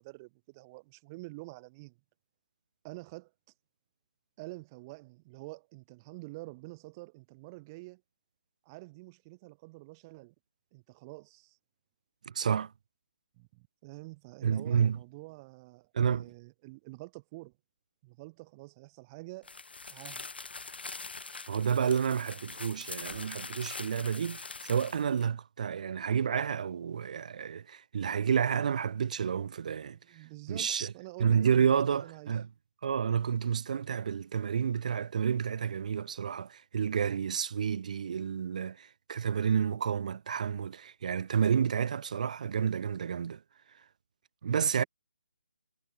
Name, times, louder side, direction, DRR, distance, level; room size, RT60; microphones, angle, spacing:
voice 1, 0.0-2.0 2.8-3.3 4.4-8.0 8.7-10.3 10.7-11.6 13.4-17.5 18.0-19.5 19.8-20.3 29.9-32.3, right 24 dB, 20° right, 7.3 m, -48 dB
voice 2, 12.2-12.7 14.4-15.0 15.9-16.3 21.5-30.0 30.5-30.9 31.2-32.5 32.8-43.4 44.4-44.8, right 7 dB, 45° right, 3.1 m, -30 dB
sound 1, 19.4-25.3, left 4 dB, 80° left, 3.0 m, -43 dB
hypercardioid pair, 160°, 5 cm